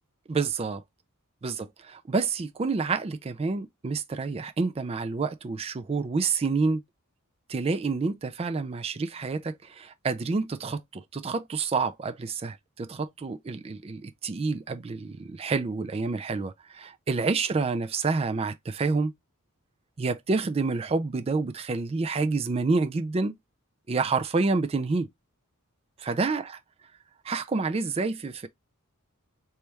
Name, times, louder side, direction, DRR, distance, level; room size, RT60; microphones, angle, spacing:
voice 1, 0.3-0.8 1.4-6.8 7.5-19.1 20.0-23.4 23.9-25.1 26.0-26.6 27.2-28.5, right 4 dB, 25° right, 0.3 m, -28 dB
3.3 x 3.0 x 3.3 m
head